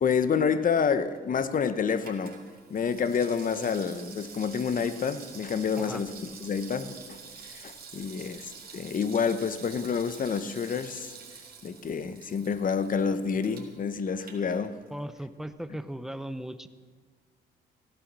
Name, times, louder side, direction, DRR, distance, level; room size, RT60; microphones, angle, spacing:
voice 1, 0.0-2.4 2.7-7.2 7.5-8.5 8.7-11.1 11.6-14.8, left 6 dB, 45° left, 1.0 m, -28 dB
Water tap faucet / Sink (filling or washing), 0.8-15.1 15.4-15.5, right 5 dB, 50° right, 2.8 m, -48 dB
voice 2, 14.9-16.7, right 1 dB, ahead, 0.8 m, -37 dB
15.5 x 11.5 x 6.1 m
cardioid pair, 90°, 20 cm